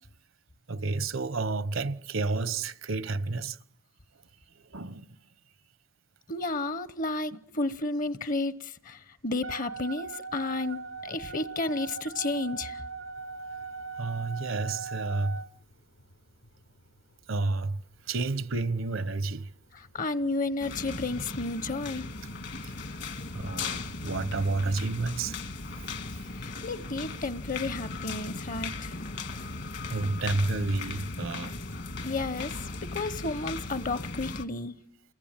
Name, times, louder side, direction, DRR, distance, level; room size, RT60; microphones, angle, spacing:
voice 1, 0.7-3.6 4.7-5.1 14.0-15.4 17.3-17.8 18.1-19.5 23.3-25.4 29.9-31.5, right 3 dB, 70° right, 1.0 m, -30 dB
voice 2, 6.3-12.8 19.7-22.0 26.4-28.9 32.0-34.7, left 2 dB, 40° left, 1.0 m, -32 dB
Wind instrument woodwind instrument, 9.4-15.5, right 4 dB, 85° right, 1.3 m, -39 dB
sound 1, 10.3-30.2, left 1 dB, 75° left, 5.5 m, -60 dB
sound 2, 20.6-34.4, left 3 dB, 60° left, 2.0 m, -37 dB
29.0 x 21.5 x 9.0 m
head